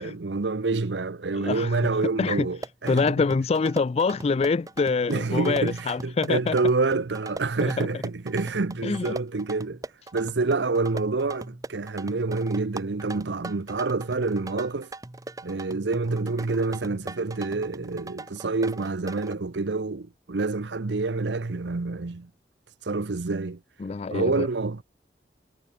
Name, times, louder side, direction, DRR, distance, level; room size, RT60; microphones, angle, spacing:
voice 1, 0.0-3.0 5.1-9.8 10.1-14.9 15.4-22.3 22.8-23.6 24.1-24.8, right 3 dB, 80° right, 0.8 m, -27 dB
voice 2, 1.3-1.7 2.2-2.5 2.9-6.5 7.6-7.9 8.8-9.1 23.8-24.5, left 4 dB, 35° left, 0.3 m, -25 dB
sound 1, 2.4-19.3, right 2 dB, 20° right, 0.8 m, -40 dB
head